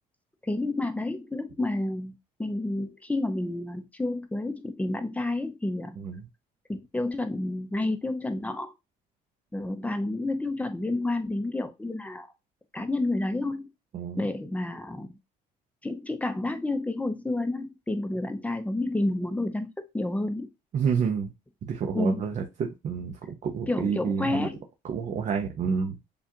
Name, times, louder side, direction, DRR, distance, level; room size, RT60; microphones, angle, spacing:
voice 1, 0.4-6.0 6.7-8.7 9.5-12.3 12.7-13.7 14.1-15.2 15.8-20.5 21.9-22.3 23.7-24.6, left 2 dB, 10° left, 0.6 m, -30 dB
voice 2, 13.9-14.3 20.7-21.3 21.6-24.5 24.9-26.0, right 6 dB, 45° right, 0.7 m, -29 dB
6.9 x 2.4 x 2.8 m
cardioid pair, 110°, 17 cm